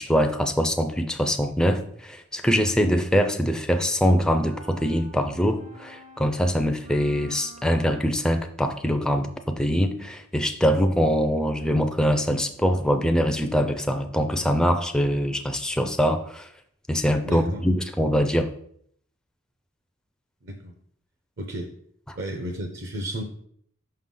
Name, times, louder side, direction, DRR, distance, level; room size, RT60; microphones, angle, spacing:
voice 1, 0.0-16.5 16.9-18.5 22.1-22.2, equal, 5° left, 6 dB, 0.4 m, -23 dB
sound 1, 4.4-8.3, right 1 dB, 80° right, 2.1 m, -48 dB
voice 2, 17.2-17.6 20.4-20.7 21.4-21.7 22.2-23.2, right 1 dB, 55° right, 4 dB, 0.7 m, -33 dB
5.5 x 5.5 x 3.8 m, 0.66 s
head